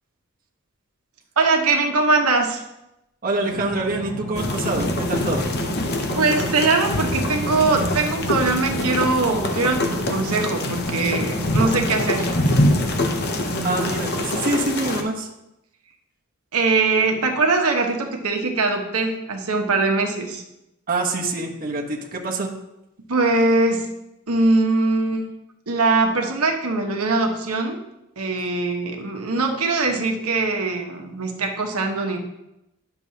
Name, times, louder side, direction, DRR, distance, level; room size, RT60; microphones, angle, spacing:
voice 1, 1.4-2.6 6.1-12.3 16.5-20.4 23.1-23.9 24.3-25.3 25.7-27.8 28.2-32.2, right 3 dB, 80° right, 3 dB, 1.1 m, -21 dB
voice 2, 3.2-5.4 13.6-15.3 20.9-22.5, right 2 dB, 40° right, -1 dB, 1.1 m, -25 dB
sound 1, 3.5-14.0, right 1 dB, 30° left, 1.6 m, -32 dB
sound 2, 4.3-15.0, left 1 dB, 45° left, 0.7 m, -25 dB
10.0 x 6.8 x 2.8 m, 0.89 s
head